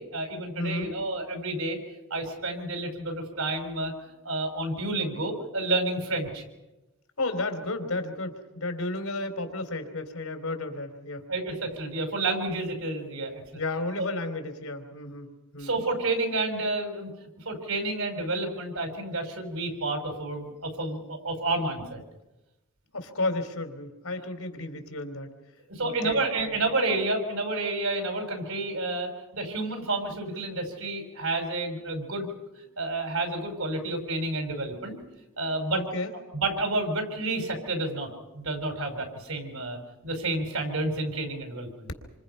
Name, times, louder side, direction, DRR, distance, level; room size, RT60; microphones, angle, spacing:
voice 1, 0.0-1.8 2.1-3.9 4.2-6.4 11.3-13.4 14.0-14.1 15.6-17.1 17.5-22.0 25.7-32.3 32.8-34.9 35.4-35.8 36.3-38.1 38.3-41.9, right 2 dB, 80° right, 4 dB, 5.5 m, -30 dB
voice 2, 0.6-0.9 7.2-11.3 13.5-15.7 22.9-25.3 25.8-26.6 35.7-36.1, left 2 dB, 90° left, 6 dB, 3.6 m, -33 dB
27.5 x 25.5 x 5.7 m, 1.0 s
head